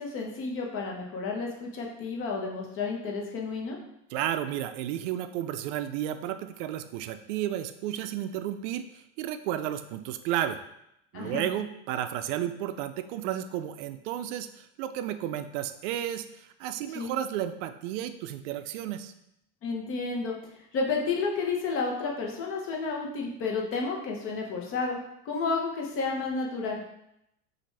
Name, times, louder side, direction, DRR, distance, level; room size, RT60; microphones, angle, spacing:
voice 1, 0.0-3.8 11.1-11.4 16.9-17.1 19.6-20.4 20.7-25.0 25.2-26.8, left 4 dB, 35° left, 0 dB, 0.8 m, -31 dB
voice 2, 4.1-10.6 11.1-19.1, right 11 dB, 75° right, 10 dB, 0.5 m, -32 dB
6.4 x 2.5 x 3.2 m, 0.80 s
supercardioid pair, 155°, 37 cm